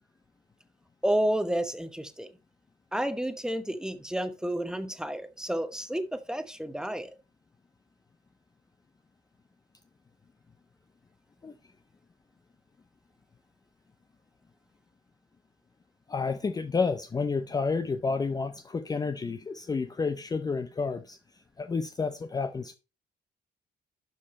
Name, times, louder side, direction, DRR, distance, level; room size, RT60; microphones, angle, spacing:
voice 1, 1.0-2.3 2.9-7.1, right 1 dB, 5° right, 1.0 m, -30 dB
voice 2, 16.1-21.2 21.6-22.7, left 4 dB, 20° left, 0.6 m, -30 dB
12.0 x 5.4 x 4.2 m
cardioid pair, 120°, 17 cm